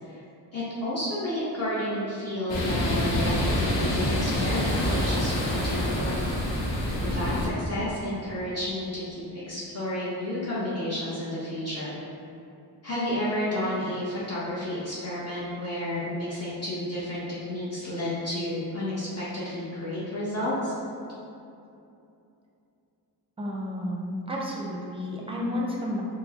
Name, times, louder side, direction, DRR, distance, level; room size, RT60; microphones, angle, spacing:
voice 1, 0.5-6.1 7.0-11.9 12.8-17.2 17.5-20.7, left 1 dB, 35° left, -10 dB, 0.9 m, -31 dB
sound 1, 2.5-7.5, left 1 dB, 85° left, 0.7 m, -26 dB
voice 2, 23.4-26.0, left 1 dB, 15° right, -3 dB, 0.6 m, -31 dB
4.5 x 2.1 x 2.8 m, 2.7 s
cardioid pair, 60°, 43 cm